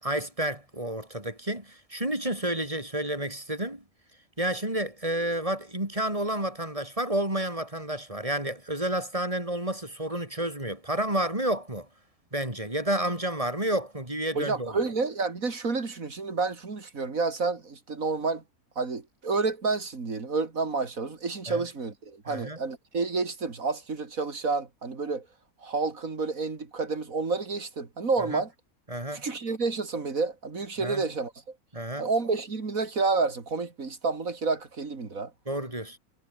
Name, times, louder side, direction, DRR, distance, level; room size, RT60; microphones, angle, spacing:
voice 1, 0.0-3.8 4.4-11.9 12.3-14.8 21.5-21.6 22.3-22.6 28.3-28.4 28.9-29.2 30.8-31.0 31.7-32.1 35.5-36.0, right 1 dB, 20° right, 4.8 m, -30 dB
voice 2, 14.3-18.4 18.8-25.3 25.6-28.5 29.1-31.5 32.0-35.3, right 4 dB, 65° right, 3.0 m, -29 dB
omnidirectional pair, 1.6 m